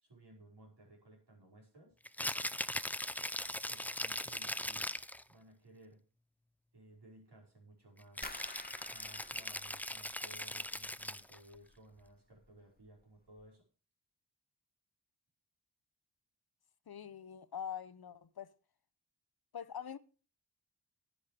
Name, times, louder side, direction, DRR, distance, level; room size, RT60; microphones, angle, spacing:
voice 1, 0.0-1.9 3.7-4.9 5.3-6.0 6.7-8.4 8.9-13.6, right 1 dB, 85° right, 5.0 m, -58 dB
Rattle (instrument), 2.0-5.2 8.2-11.4, left 1 dB, 5° left, 0.5 m, -40 dB
sound 1, 8.2-11.1 11.4-12.1 12.4-12.9 13.3-13.4, left 2 dB, 25° left, 1.3 m, -52 dB
voice 2, 16.9-18.5 19.5-20.0, left 8 dB, 65° left, 0.8 m, -44 dB
10.5 x 10.0 x 5.0 m
wide cardioid pair, 55°, 39 cm